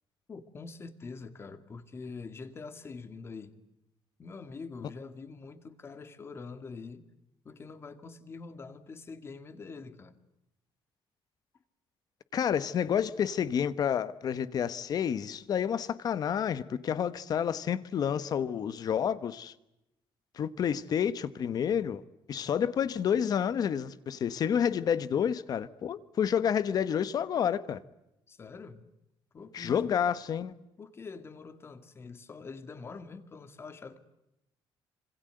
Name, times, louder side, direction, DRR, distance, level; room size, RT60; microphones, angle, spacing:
voice 1, 0.3-3.5 4.2-7.1 7.4-10.1 28.3-28.8 29.3-30.0 30.8-34.0, left 4 dB, 25° left, 2.1 m, -45 dB
voice 2, 12.3-19.5 20.3-22.0 22.3-27.8 29.5-30.5, left 8 dB, 45° left, 1.2 m, -29 dB
27.0 x 26.5 x 7.9 m
cardioid pair, 175°, 9 cm